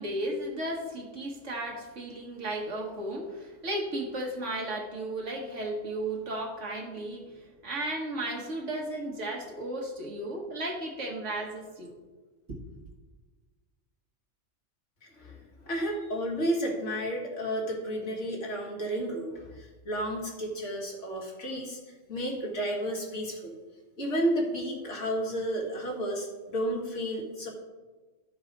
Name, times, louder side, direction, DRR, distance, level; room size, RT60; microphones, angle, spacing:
voice 1, 0.0-11.9 12.5-12.6, right 1 dB, 70° right, 1 dB, 1.7 m, -34 dB
voice 2, 15.0-23.6 24.0-27.5, right 1 dB, 70° left, -1 dB, 2.1 m, -32 dB
12.5 x 4.8 x 5.1 m, 1.3 s
omnidirectional pair, 1.3 m